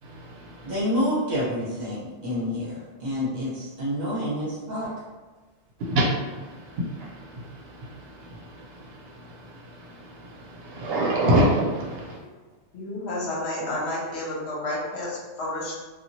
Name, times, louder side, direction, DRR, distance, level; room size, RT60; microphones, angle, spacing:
voice 1, 0.0-0.8 5.8-12.3, right 1 dB, 65° right, -3 dB, 0.8 m, -28 dB
voice 2, 0.6-4.9, equal, 40° right, -7 dB, 1.0 m, -28 dB
voice 3, 12.7-15.7, left 1 dB, 70° left, -5 dB, 1.0 m, -30 dB
2.9 x 2.3 x 2.7 m, 1.3 s
omnidirectional pair, 1.2 m